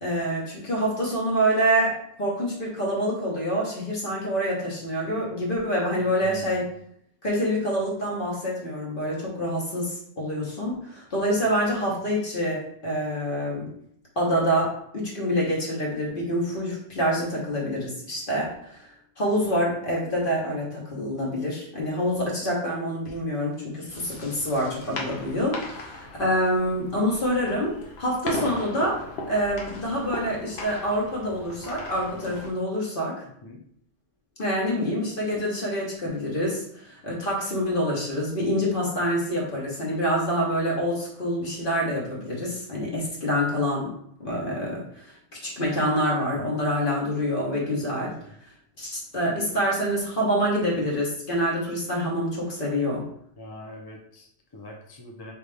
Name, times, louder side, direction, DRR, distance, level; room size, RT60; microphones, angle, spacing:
voice 1, 0.0-6.6 7.2-13.7 14.2-18.9 19.2-33.2 34.4-43.9 44.2-45.1 45.4-48.1 48.8-53.1, equal, 50° left, -3 dB, 1.3 m, -26 dB
voice 2, 6.0-6.6 33.4-33.6 53.4-55.3, left 1 dB, 30° left, 0 dB, 0.4 m, -43 dB
sound 1, 23.9-32.5, left 2 dB, 70° left, 1.1 m, -37 dB
3.9 x 3.4 x 3.4 m, 0.67 s
omnidirectional pair, 1.1 m